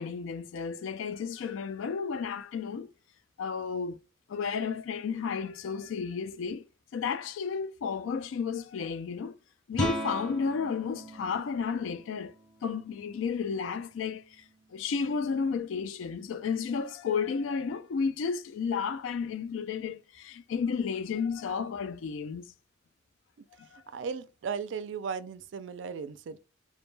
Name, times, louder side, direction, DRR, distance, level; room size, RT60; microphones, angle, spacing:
voice 1, 0.0-2.9 3.4-4.0 4.3-6.6 6.9-9.3 9.7-12.3 12.6-14.4 14.7-22.5 23.7-23.8, left 5 dB, 80° left, 0.3 m, -32 dB
Guitar, 9.7-15.3, equal, 5° left, 0.5 m, -40 dB
voice 2, 23.9-26.4, right 6 dB, 65° right, 0.3 m, -36 dB
2.2 x 2.1 x 3.1 m
head